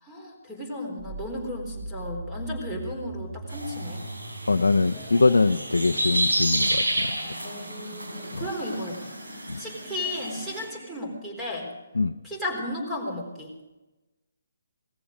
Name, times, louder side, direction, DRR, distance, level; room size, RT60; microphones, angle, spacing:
voice 1, 0.0-4.1 7.4-9.1 9.6-11.7 12.2-13.5, left 1 dB, 10° right, 0 dB, 3.9 m, -34 dB
sound 1, 1.0-11.0, right 1 dB, 50° right, 4.9 m, -41 dB
sound 2, 3.5-10.6, right 1 dB, 85° right, 4.3 m, -30 dB
voice 2, 4.5-7.3 8.3-8.5 9.5-9.6 12.0-12.1, left 3 dB, 80° left, 5 dB, 0.6 m, -23 dB
18.5 x 15.0 x 5.2 m, 1.1 s
figure-of-eight pair, 145°, 0 cm